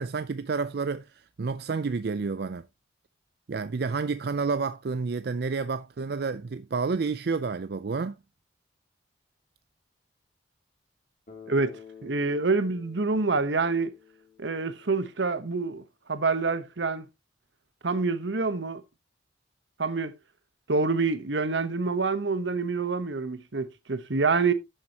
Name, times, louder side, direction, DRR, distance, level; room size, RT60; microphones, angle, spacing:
voice 1, 0.0-2.7 3.5-8.2, right 4 dB, 55° right, 0.4 m, -30 dB
Bass guitar, 11.3-15.3, left 7 dB, 45° left, 2.8 m, -50 dB
voice 2, 12.0-13.9 14.4-17.1 17.8-18.8 19.8-20.1 20.7-24.5, right 4 dB, 75° right, 1.0 m, -27 dB
11.5 x 7.5 x 2.9 m
head